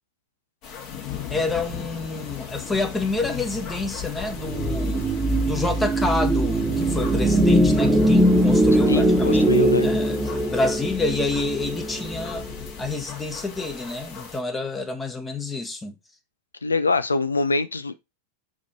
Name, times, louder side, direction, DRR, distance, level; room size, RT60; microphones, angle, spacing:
sound 1, 0.6-14.4, left 7 dB, 40° left, 2.3 m, -38 dB
voice 1, 1.3-5.0 5.4-10.2 10.5-12.5 12.8-15.9, left 2 dB, 15° left, 1.2 m, -28 dB
sound 2, 4.4-12.7, right 1 dB, 15° right, 1.1 m, -21 dB
voice 2, 8.9-9.9 16.6-17.9, left 3 dB, 75° left, 0.6 m, -24 dB
5.5 x 5.0 x 4.4 m
figure-of-eight pair, 90°, 0 cm